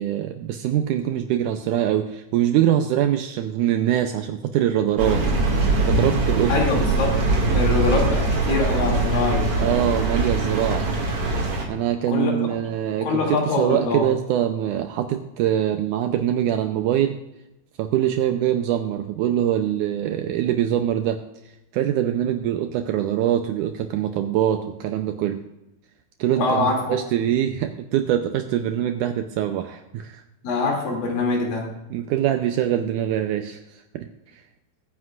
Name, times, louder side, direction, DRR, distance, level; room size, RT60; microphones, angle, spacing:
voice 1, 0.0-5.3 5.8-6.5 9.6-10.9 11.7-17.2 17.8-21.2 21.7-25.4 26.2-30.2 31.9-33.6 33.9-34.1, right 11 dB, 85° right, 6 dB, 1.8 m, -23 dB
sound 1, 5.0-11.6, right 2 dB, 45° right, 2.7 m, -22 dB
voice 2, 6.5-7.2 7.5-9.7 12.1-12.3 13.0-14.1 26.4-27.0 30.4-31.7, left 3 dB, 65° left, -1 dB, 4.3 m, -24 dB
22.5 x 9.5 x 2.5 m, 0.90 s
omnidirectional pair, 4.4 m